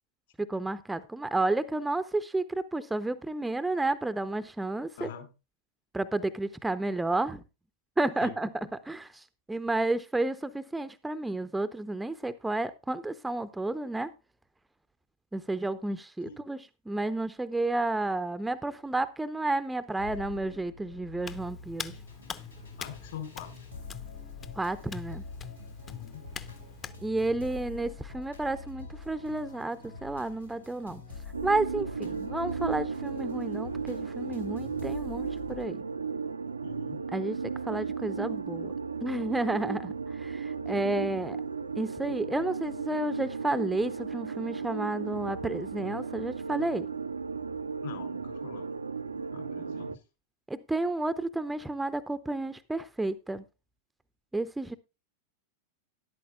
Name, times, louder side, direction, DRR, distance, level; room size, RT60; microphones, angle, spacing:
voice 1, 0.4-5.1 5.9-7.4 8.0-14.1 15.3-22.0 24.6-25.2 27.0-31.0 31.4-35.8 37.1-38.7 39.0-41.4 41.8-46.9 50.5-53.4 54.3-54.7, right 2 dB, 5° right, 0.6 m, -31 dB
voice 2, 5.0-5.3 8.2-8.3 16.2-16.4 22.8-23.5 25.9-26.2 36.6-37.0 40.7-40.9 47.8-48.7 49.1-49.9, left 9 dB, 60° left, 4.2 m, -43 dB
sound 1, 20.0-35.7, left 4 dB, 85° left, 4.5 m, -45 dB
Hands, 21.2-27.0, left 7 dB, 25° left, 0.8 m, -44 dB
sound 2, 31.3-50.0, right 5 dB, 75° right, 0.5 m, -35 dB
13.0 x 11.5 x 2.3 m
figure-of-eight pair, 90°, 0 cm